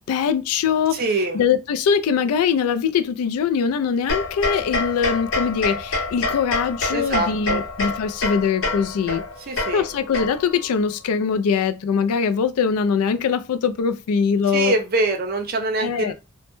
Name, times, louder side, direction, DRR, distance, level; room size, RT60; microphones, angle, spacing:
voice 1, 0.0-1.0 1.3-9.2 9.7-14.7 15.8-16.1, left 6 dB, 85° left, 0.3 m, -22 dB
voice 2, 0.9-1.4 6.9-7.6 9.4-9.9 14.5-16.1, right 2 dB, 40° right, 0.4 m, -24 dB
sound 1, 4.1-10.7, left 3 dB, 65° left, 0.8 m, -27 dB
2.1 x 2.1 x 2.9 m
head